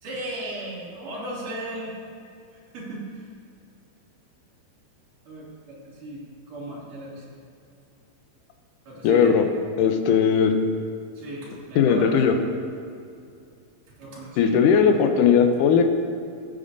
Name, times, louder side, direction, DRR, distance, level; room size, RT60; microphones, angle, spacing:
voice 1, 0.0-2.0 2.5-3.3 5.3-7.2 8.9-9.3 11.1-12.1 14.0-14.6, right 1 dB, 60° right, -7 dB, 4.0 m, -36 dB
voice 2, 9.0-9.5 9.8-10.5 11.8-12.4 14.4-15.8, left 7 dB, 80° left, 5 dB, 1.9 m, -18 dB
16.0 x 8.7 x 2.7 m, 2.4 s
omnidirectional pair, 4.5 m